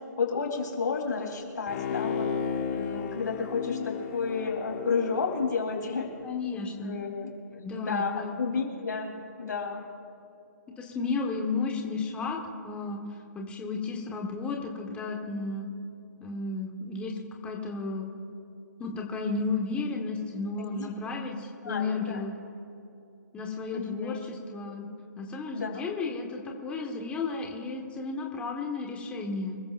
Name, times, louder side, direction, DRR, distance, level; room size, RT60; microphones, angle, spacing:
voice 1, 0.2-2.3 2.7-6.1 6.8-9.8 20.7-20.9 21.6-22.2 23.7-24.2 25.5-25.8, left 5 dB, 75° left, 0 dB, 3.7 m, -31 dB
Bowed string instrument, 1.7-6.3 6.7-6.8, left 6 dB, 45° left, 2.2 m, -34 dB
voice 2, 6.2-7.0 7.6-8.4 10.8-12.4 12.6-13.0 13.3-15.7 16.2-18.1 18.8-22.3 23.3-24.9 25.2-29.6, left 4 dB, 10° left, 0 dB, 1.4 m, -33 dB
26.5 x 14.5 x 2.6 m, 2.7 s
hypercardioid pair, 145°, 10 cm